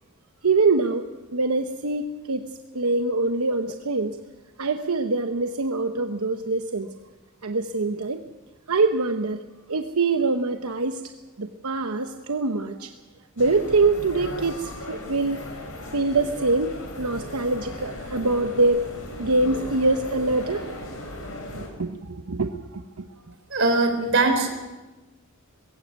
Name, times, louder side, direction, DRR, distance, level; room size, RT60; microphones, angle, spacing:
voice 1, 0.4-1.0 1.3-2.4 2.7-4.2 4.6-6.9 7.4-8.2 8.7-9.4 9.7-11.0 11.4-12.9 13.4-15.4 15.9-18.8 19.2-20.6 21.5-22.6 23.0-23.1, right 3 dB, 90° right, 6 dB, 1.0 m, -24 dB
sound 1, 13.4-21.7, left 1 dB, 65° left, 5.3 m, -37 dB
voice 2, 23.5-24.5, right 3 dB, 60° right, 5 dB, 4.1 m, -21 dB
20.5 x 16.5 x 8.1 m, 1.1 s
head